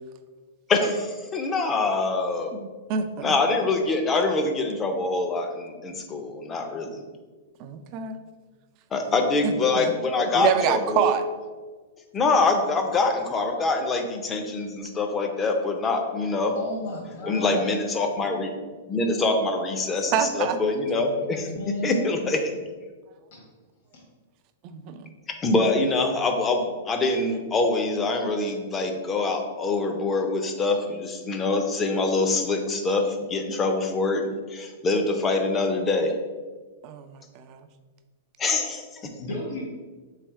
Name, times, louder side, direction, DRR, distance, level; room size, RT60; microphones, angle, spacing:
voice 1, 0.7-2.5 3.2-7.0 8.9-11.1 12.1-16.5 17.2-18.5 18.9-22.4 25.4-36.1 38.4-39.1, left 3 dB, 20° left, 4 dB, 0.6 m, -25 dB
voice 2, 2.5-3.3 7.6-8.2 9.4-9.9 10.3-11.2 20.1-20.6 24.6-25.1 36.8-37.7, right 8 dB, 40° right, 8 dB, 0.4 m, -27 dB
voice 3, 16.5-17.7 21.5-22.2 23.3-23.4 23.9-24.0 39.2-39.7, left 1 dB, 55° left, -4 dB, 1.3 m, -33 dB
3.4 x 3.3 x 4.5 m, 1.4 s
hypercardioid pair, 130°, 0 cm